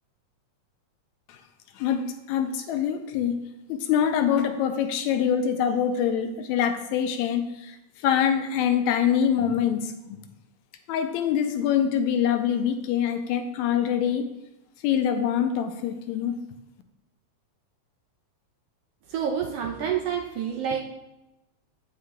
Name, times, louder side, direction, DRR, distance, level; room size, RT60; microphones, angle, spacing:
voice 1, 1.8-3.4 3.7-10.2 10.9-14.3 14.8-16.4, left 8 dB, 85° left, 7 dB, 1.9 m, -25 dB
voice 2, 19.1-20.8, right 8 dB, 75° right, 2 dB, 1.5 m, -28 dB
15.5 x 5.6 x 2.3 m, 0.93 s
omnidirectional pair, 3.3 m